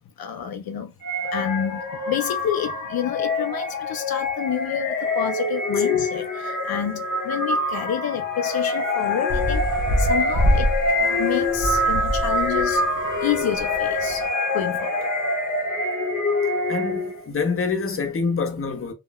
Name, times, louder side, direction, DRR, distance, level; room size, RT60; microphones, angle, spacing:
voice 1, 0.2-0.9 1.2-9.7 10.0-10.7 11.2-12.8 13.2-15.1, left 9 dB, 75° left, 0.5 m, -29 dB
sound 1, 1.0-17.2, left 2 dB, 50° left, 1.2 m, -25 dB
sound 2, 4.9-5.5 5.8-7.7 8.4-15.6, equal, 5° right, 0.8 m, -37 dB
sound 3, 9.3-14.3, equal, 30° right, 0.9 m, -25 dB
voice 2, 16.7-18.9, left 5 dB, 35° left, 0.7 m, -26 dB
3.6 x 2.2 x 2.2 m
wide cardioid pair, 125°, 37 cm